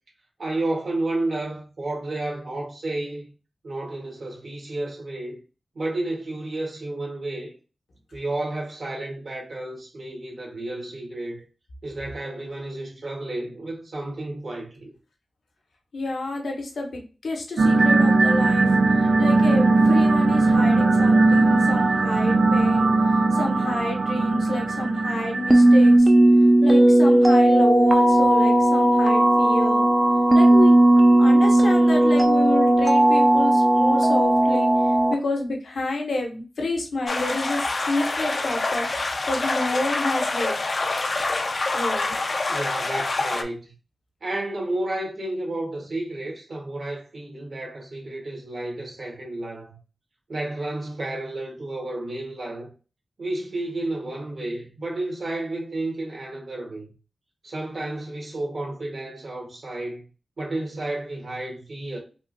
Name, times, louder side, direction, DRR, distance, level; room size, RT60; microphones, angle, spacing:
voice 1, 0.4-3.3 3.6-5.4 5.7-7.5 8.1-11.4 11.8-14.9 42.5-43.7 44.2-49.8 50.3-52.7 53.2-56.9 57.4-60.0 60.4-62.0, right 2 dB, 65° right, 1.4 m, -31 dB
voice 2, 15.9-18.7 19.0-26.1 26.6-29.9 30.3-30.7 31.2-34.7 35.1-40.6 41.7-42.1, left 2 dB, 80° left, 0.8 m, -29 dB
sound 1, 17.6-26.0, right 3 dB, 85° right, 0.4 m, -19 dB
sound 2, 25.5-35.1, right 1 dB, 20° right, 0.4 m, -16 dB
sound 3, 37.1-43.4, left 3 dB, 50° left, 0.4 m, -26 dB
3.5 x 2.5 x 2.5 m
wide cardioid pair, 75°, 0 cm